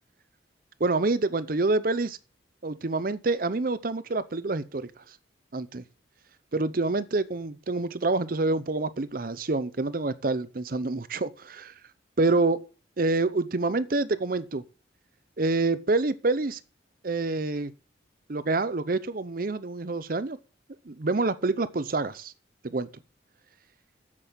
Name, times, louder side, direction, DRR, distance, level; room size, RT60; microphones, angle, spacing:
voice 1, 0.8-2.2 2.6-5.2 5.5-5.8 6.5-11.8 12.2-12.6 13.0-14.6 15.4-16.6 17.0-17.7 18.3-20.4 20.8-22.3 22.6-22.9, right 3 dB, 45° right, 0.7 m, -27 dB
7.9 x 7.5 x 7.6 m
head